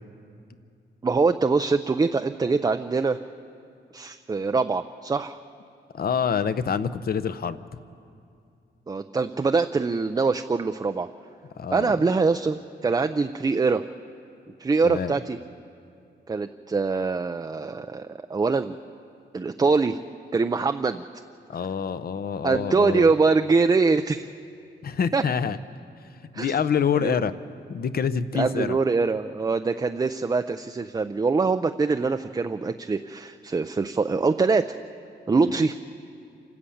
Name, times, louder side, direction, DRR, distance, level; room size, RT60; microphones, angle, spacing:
voice 1, 1.0-3.2 3.9-5.4 8.9-11.1 11.7-13.8 14.6-15.4 16.3-18.8 19.3-20.0 20.3-21.0 22.4-24.3 25.1-25.2 26.3-26.5 27.0-27.2 28.3-34.7 35.3-35.8, right 4 dB, 20° right, 8 dB, 0.4 m, -23 dB
voice 2, 5.9-7.6 11.6-11.9 14.8-15.1 21.5-23.1 24.8-25.6 26.3-27.3 27.7-28.8 35.4-35.6, left 7 dB, 50° left, 13 dB, 0.7 m, -26 dB
27.5 x 13.0 x 8.5 m, 2.5 s
wide cardioid pair, 130°, 20 cm